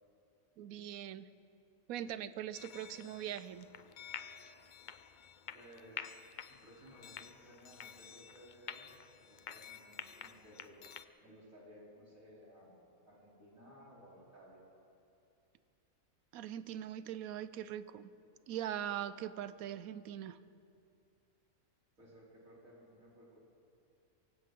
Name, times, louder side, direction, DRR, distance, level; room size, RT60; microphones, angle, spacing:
voice 1, 0.6-1.3 1.9-3.7 16.3-18.1 18.5-20.4, right 11 dB, 90° right, 14 dB, 1.1 m, -41 dB
sound 1, 2.5-11.0, left 8 dB, 65° left, 0.4 m, -50 dB
voice 2, 5.5-6.1 6.5-8.9 9.2-10.8 11.2-14.7 22.0-23.4, equal, 70° right, -5 dB, 4.1 m, -58 dB
23.5 x 16.0 x 3.7 m, 2.5 s
omnidirectional pair, 1.4 m